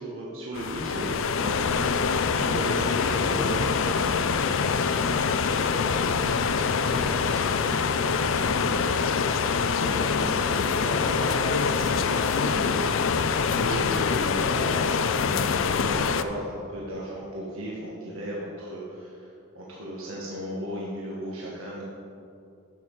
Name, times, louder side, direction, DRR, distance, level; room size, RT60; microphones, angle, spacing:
voice 1, 0.0-1.6 2.4-3.9 9.5-12.8 13.5-19.3 19.5-21.8, right 1 dB, 70° right, -5 dB, 1.5 m, -35 dB
sound 1, 0.5-16.2, left 5 dB, 60° left, 0.4 m, -25 dB
voice 2, 3.0-3.3 3.9-9.8 10.9-11.4 13.5-13.9, right 1 dB, 85° right, -2 dB, 2.0 m, -40 dB
10.5 x 7.5 x 4.7 m, 2.6 s
head